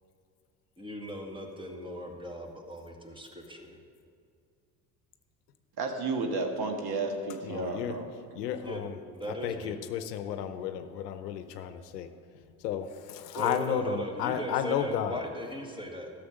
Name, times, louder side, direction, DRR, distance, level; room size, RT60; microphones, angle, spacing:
voice 1, 0.8-3.8 8.6-8.9 9.1-9.7 13.3-16.1, equal, 10° right, 2 dB, 1.8 m, -38 dB
voice 2, 5.8-8.1, right 3 dB, 50° right, 4 dB, 1.7 m, -32 dB
voice 3, 7.4-7.9 8.3-9.0 9.3-12.1 12.6-15.2, left 9 dB, 85° left, 10 dB, 0.8 m, -33 dB
13.0 x 6.7 x 6.5 m, 2.3 s
hypercardioid pair, 65°, 47 cm